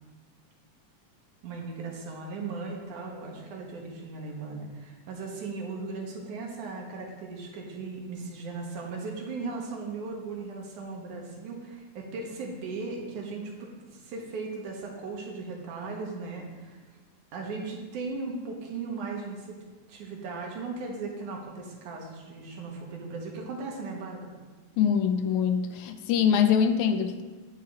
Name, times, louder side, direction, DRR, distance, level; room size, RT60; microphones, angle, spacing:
voice 1, 1.4-16.8 17.3-19.5 19.9-24.3, right 3 dB, 90° right, -1 dB, 3.0 m, -37 dB
voice 2, 24.8-27.2, left 7 dB, 85° left, 8 dB, 2.1 m, -24 dB
9.4 x 9.1 x 3.8 m, 1.4 s
omnidirectional pair, 3.4 m